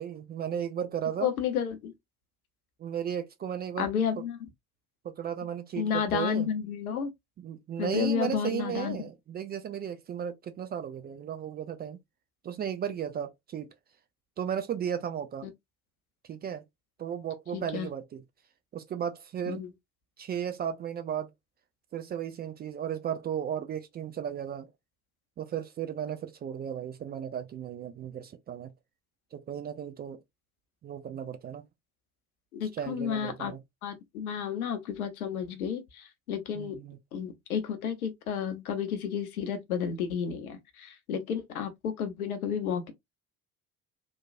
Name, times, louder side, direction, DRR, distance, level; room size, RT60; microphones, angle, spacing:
voice 1, 0.0-1.3 2.8-3.9 5.0-6.5 7.4-12.0 12.4-13.7 14.4-15.5 16.3-16.6 17.0-18.2 18.7-19.6 20.2-21.3 21.9-24.7 25.4-28.7 29.3-30.2 30.8-31.6 32.7-33.6 36.6-37.0, right 9 dB, 25° right, 0.4 m, -35 dB
voice 2, 1.2-1.9 3.8-4.5 5.8-7.1 7.8-9.1 17.5-17.9 19.5-19.7 32.5-33.5 33.8-36.8 37.1-42.9, left 7 dB, 75° left, 0.7 m, -31 dB
3.0 x 2.2 x 2.4 m
figure-of-eight pair, 50°, 43 cm